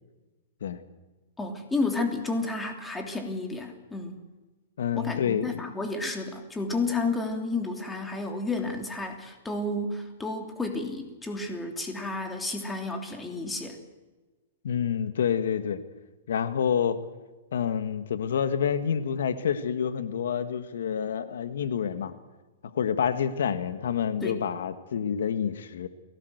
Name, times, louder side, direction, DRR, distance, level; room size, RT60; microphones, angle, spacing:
voice 1, 1.4-4.2 4.9-13.8 24.2-24.4, left 3 dB, 10° left, 4 dB, 3.1 m, -31 dB
voice 2, 4.8-5.6 14.6-15.8 16.3-17.0 17.5-22.1 22.7-25.9, left 8 dB, 80° left, 10 dB, 1.6 m, -28 dB
23.0 x 17.5 x 8.0 m, 1.2 s
hypercardioid pair, 140°, 0 cm